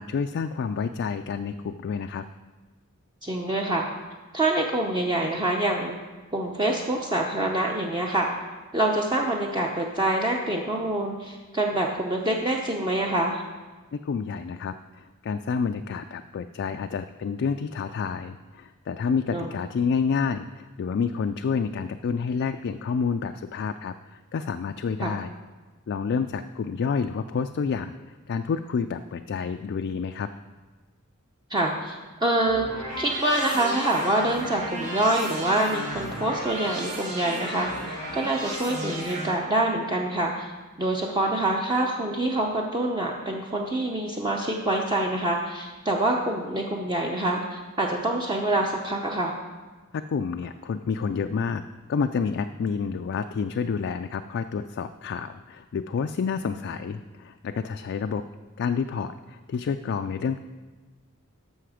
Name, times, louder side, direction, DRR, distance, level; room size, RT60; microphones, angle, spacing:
voice 1, 0.0-2.2 13.9-25.3 25.9-30.3 50.1-51.6 51.9-58.2 58.6-60.4, left 5 dB, 55° left, 8 dB, 0.3 m, -29 dB
voice 2, 3.2-3.9 4.3-6.0 6.3-8.3 8.7-13.4 19.3-19.6 25.0-25.1 31.5-32.7 33.0-40.5 40.8-49.4, right 1 dB, 20° right, 0 dB, 0.7 m, -26 dB
sound 1, 32.5-39.3, right 1 dB, 90° right, 2.3 m, -34 dB
13.5 x 5.8 x 4.9 m, 1.3 s
head